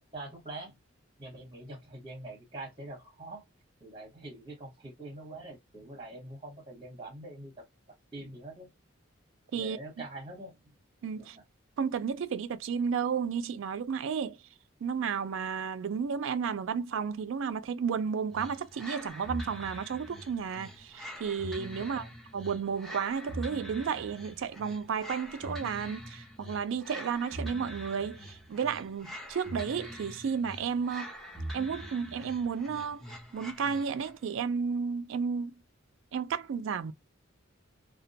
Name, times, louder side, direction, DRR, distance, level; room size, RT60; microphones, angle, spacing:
voice 1, 0.1-0.8 1.2-3.4 3.8-7.7 8.1-8.7 9.5-10.7 11.2-11.4 21.8-22.1, right 2 dB, 25° right, 0.9 m, -44 dB
voice 2, 11.0-11.4 11.8-14.4 14.8-22.0 22.3-31.1 31.5-33.0 33.3-35.5 36.1-36.9, right 6 dB, 70° right, 0.3 m, -32 dB
sound 1, 18.3-34.2, equal, ahead, 0.5 m, -43 dB
2.2 x 2.1 x 2.6 m
head